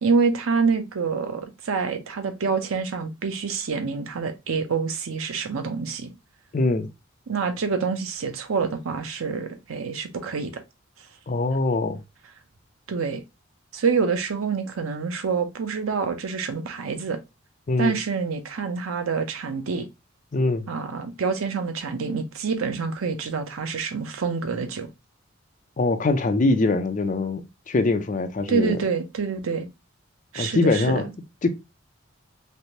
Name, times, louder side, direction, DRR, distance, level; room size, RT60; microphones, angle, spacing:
voice 1, 0.0-6.1 7.3-10.5 12.9-13.2 13.7-17.2 17.8-19.9 20.7-24.9 28.5-29.7 30.3-31.0, right 5 dB, 85° right, 0.6 m, -26 dB
voice 2, 6.5-6.9 11.3-12.0 17.7-17.9 20.3-20.7 25.8-28.8 30.4-31.1 31.4-31.5, left 2 dB, 35° left, 0.4 m, -23 dB
3.3 x 2.5 x 2.7 m
head